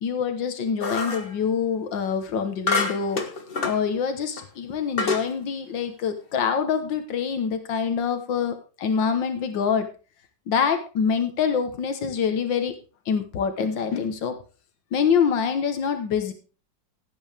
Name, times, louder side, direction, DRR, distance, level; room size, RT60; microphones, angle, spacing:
voice 1, 0.0-3.2 3.6-9.9 10.5-12.7 13.1-14.3 14.9-16.3, left 6 dB, 90° left, 7 dB, 2.0 m, -25 dB
sound 1, 0.8-1.3 2.7-3.8 4.4-4.5 5.0-5.3, left 3 dB, 35° left, 1.3 m, -27 dB
16.0 x 8.8 x 3.5 m, 0.35 s
omnidirectional pair, 1.9 m